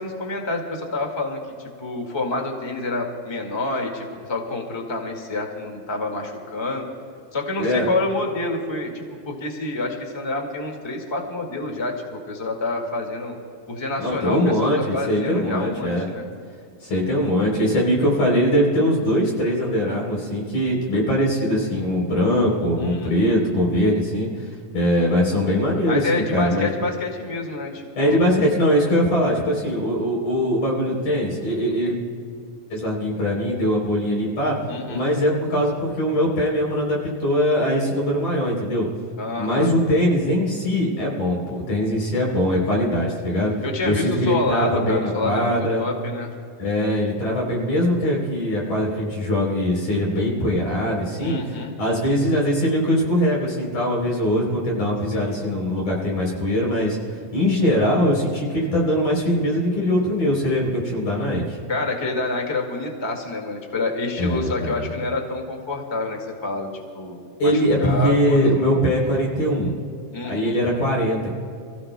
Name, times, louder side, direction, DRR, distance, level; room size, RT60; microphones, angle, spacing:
voice 1, 0.0-6.8 7.3-13.4 13.7-16.2 22.8-23.4 25.9-28.2 34.7-35.0 39.2-39.7 43.6-46.3 51.2-51.7 55.1-55.4 61.7-66.7 66.9-68.6 70.1-70.5, left 2 dB, 15° left, 1 dB, 1.0 m, -28 dB
voice 2, 7.6-7.9 14.0-16.1 16.8-24.5 24.7-26.7 28.0-32.0 32.7-34.6 34.9-38.9 39.4-43.5 43.8-45.8 46.6-57.0 57.3-61.6 64.2-64.9 67.4-69.8 70.3-71.3, equal, 55° left, -2 dB, 4.6 m, -21 dB
28.5 x 15.5 x 2.2 m, 2.4 s
omnidirectional pair, 3.6 m